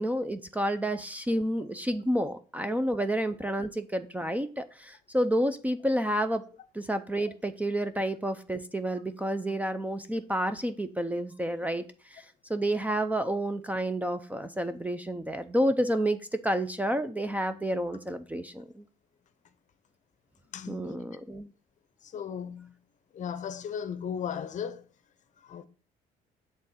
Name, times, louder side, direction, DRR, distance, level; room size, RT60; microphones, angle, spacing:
voice 1, 0.0-6.5 6.7-18.8 20.7-21.5, right 1 dB, 10° right, 0.5 m, -30 dB
voice 2, 20.5-20.9 22.1-22.7 23.1-24.8 25.5-25.7, left 8 dB, 45° left, 0.7 m, -36 dB
7.5 x 3.6 x 5.6 m
cardioid pair, 110°, 17 cm